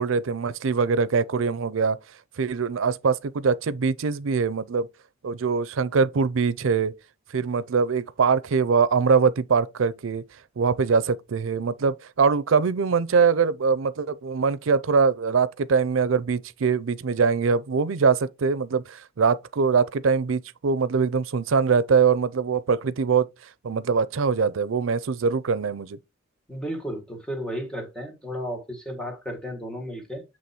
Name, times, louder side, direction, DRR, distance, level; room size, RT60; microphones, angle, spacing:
voice 1, 0.0-2.0 2.4-4.9 5.2-6.9 7.3-10.2 10.6-23.3 23.6-26.0, right 5 dB, 90° right, 0.5 m, -23 dB
voice 2, 26.5-30.2, equal, 5° left, 1.7 m, -33 dB
7.7 x 3.0 x 4.2 m
head